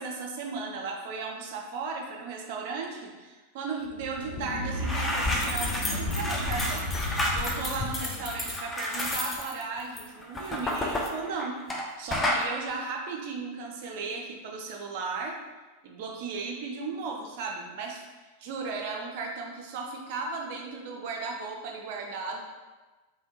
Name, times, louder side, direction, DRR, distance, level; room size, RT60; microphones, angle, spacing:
voice 1, 0.0-6.9 7.3-11.6 12.0-15.4 15.8-18.1 18.4-22.4, right 4 dB, 50° right, 1 dB, 0.5 m, -35 dB
sound 1, 3.8-8.7, left 1 dB, 75° left, 0.6 m, -35 dB
sound 2, 4.4-4.5 4.7-11.8 12.1-12.5, left 1 dB, 15° left, 0.4 m, -30 dB
3.3 x 2.2 x 2.9 m, 1.2 s
figure-of-eight pair, 90°, 0 cm